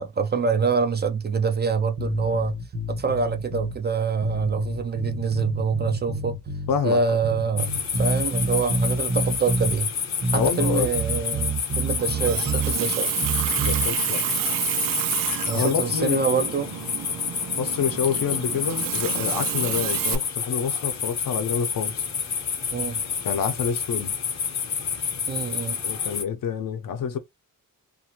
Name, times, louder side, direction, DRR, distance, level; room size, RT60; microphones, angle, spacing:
voice 1, 0.0-2.6 2.9-6.3 6.8-7.7 8.0-9.9 10.3-13.2 15.5-16.7 22.7-23.0 25.3-25.8, right 5 dB, 30° right, 0.4 m, -25 dB
sound 1, 2.0-3.8 4.2-6.8 7.2-9.8 10.2-12.8 13.2-13.9, right 2 dB, 50° right, 1.2 m, -28 dB
voice 2, 6.7-7.0 10.3-10.9 13.6-14.2 15.5-16.4 17.6-22.0 23.2-24.1 25.8-27.2, left 7 dB, 80° left, 0.7 m, -27 dB
sound 2, 7.6-26.2, left 7 dB, 55° left, 0.8 m, -29 dB
Water tap faucet, 12.0-20.2, right 9 dB, 80° right, 0.5 m, -29 dB
2.6 x 2.4 x 2.8 m
wide cardioid pair, 140°, 33 cm